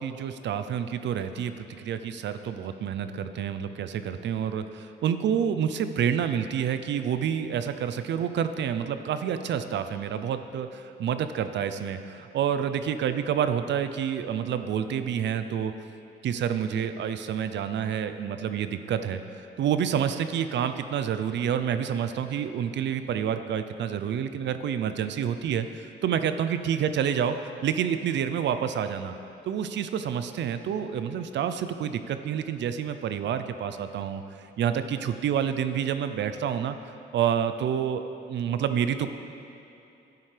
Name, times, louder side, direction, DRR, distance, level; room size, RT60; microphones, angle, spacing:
voice 1, 0.0-15.7 16.2-19.2 19.6-29.1 29.4-36.8 37.1-39.1, right 8 dB, 65° right, 10 dB, 0.5 m, -28 dB
11.5 x 9.4 x 3.4 m, 2.8 s
cardioid pair, 90°, 20 cm